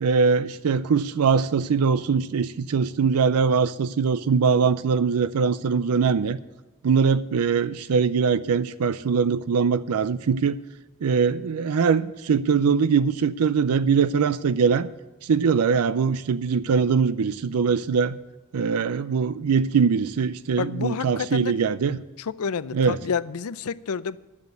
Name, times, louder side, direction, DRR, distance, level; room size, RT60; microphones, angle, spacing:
voice 1, 0.0-6.4 6.8-10.6 11.0-14.9 15.2-18.2 18.5-22.0 22.7-23.0, right 5 dB, 85° right, 14 dB, 0.5 m, -22 dB
voice 2, 20.6-21.5 22.2-24.2, left 6 dB, 75° left, 17 dB, 0.5 m, -29 dB
10.5 x 7.3 x 7.8 m, 1.1 s
head